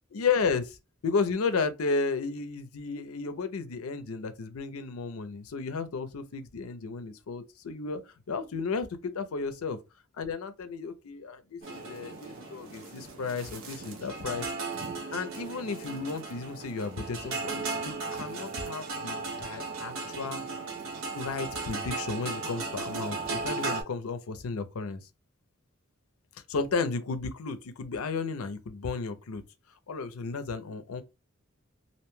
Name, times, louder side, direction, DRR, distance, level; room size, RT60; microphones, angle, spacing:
voice 1, 0.1-0.8 1.0-8.0 8.3-9.8 10.2-14.5 15.1-20.4 21.1-25.0 26.5-29.4 29.9-31.0, left 4 dB, 85° left, 0.5 m, -33 dB
sound 1, 11.6-23.8, right 3 dB, 65° right, 0.8 m, -36 dB
2.6 x 2.1 x 3.1 m
head